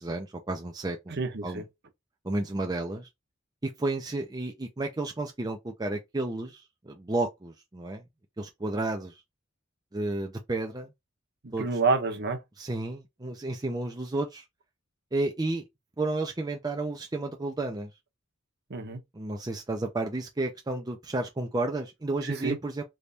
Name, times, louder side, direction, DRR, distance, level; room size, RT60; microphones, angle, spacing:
voice 1, 0.0-1.6 2.2-3.1 3.6-8.0 8.4-9.1 9.9-10.9 11.5-11.7 12.6-14.4 15.1-15.6 16.0-17.9 19.1-22.8, right 2 dB, 20° right, 0.5 m, -32 dB
voice 2, 1.1-1.6 11.4-12.4 18.7-19.0 22.2-22.6, right 4 dB, 55° right, 0.9 m, -28 dB
3.4 x 3.1 x 2.7 m
head